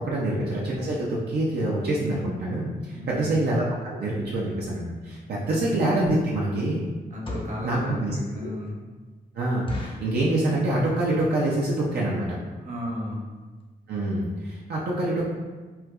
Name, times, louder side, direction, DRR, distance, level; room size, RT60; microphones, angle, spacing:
voice 1, 0.0-6.8 7.6-8.5 9.3-12.3 13.9-15.2, right 1 dB, 80° right, -5 dB, 0.5 m, -26 dB
voice 2, 2.9-3.4 5.3-5.6 7.1-8.8 12.6-13.3, left 1 dB, 45° right, -4 dB, 0.9 m, -35 dB
sound 1, 7.2-7.7 8.2-8.3 8.6-8.7 9.1-9.2 9.7-10.2 10.8-11.1 11.3-11.4 11.7-11.9 12.5-12.6 12.8-13.0 13.3-13.4 13.6-13.7, left 1 dB, 30° left, 0.5 m, -36 dB
4.3 x 2.3 x 2.3 m, 1.3 s
cardioid pair, 80°, 17 cm